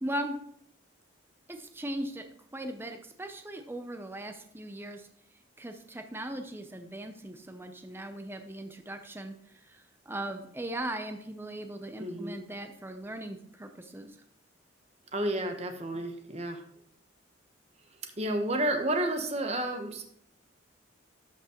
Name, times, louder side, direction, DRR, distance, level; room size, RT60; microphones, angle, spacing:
voice 1, 0.0-0.4 1.5-2.2 2.5-5.1 5.6-9.3 9.7-14.1, right 1 dB, 10° right, 6 dB, 0.5 m, -38 dB
voice 2, 12.0-12.4 15.1-16.6 18.2-20.0, right 1 dB, 30° right, 5 dB, 0.9 m, -31 dB
12.5 x 6.0 x 2.9 m, 0.70 s
head